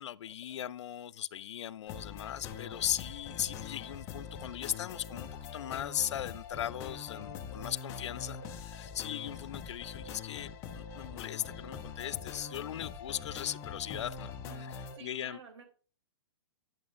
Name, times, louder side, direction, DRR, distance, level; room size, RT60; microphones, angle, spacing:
voice 1, 0.0-14.3 14.6-15.4, left 11 dB, 80° left, 0.4 m, -38 dB
sound 1, 1.9-15.0, left 6 dB, 20° left, 0.5 m, -43 dB
voice 2, 14.5-15.6, right 6 dB, 85° right, 3.1 m, -52 dB
10.5 x 7.2 x 2.5 m
hypercardioid pair, 165°, 15 cm